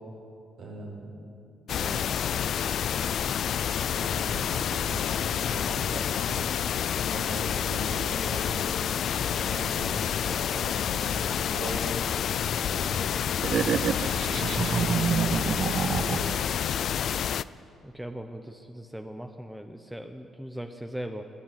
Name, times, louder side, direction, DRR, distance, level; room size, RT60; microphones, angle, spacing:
voice 1, 0.6-1.1 1.7-2.1 4.0-6.4 7.0-8.7 9.2-11.9 12.6-13.1 14.0-16.4, right 2 dB, 75° right, -2 dB, 5.1 m, -39 dB
sound 1, 1.7-17.4, left 9 dB, 65° left, 0.3 m, -28 dB
voice 2, 2.9-3.3 3.8-4.6 17.8-21.3, equal, 5° right, 6 dB, 0.7 m, -40 dB
sound 2, 13.4-16.5, right 7 dB, 55° right, 0.3 m, -28 dB
21.0 x 8.6 x 7.8 m, 2.6 s
cardioid pair, 90°, 0 cm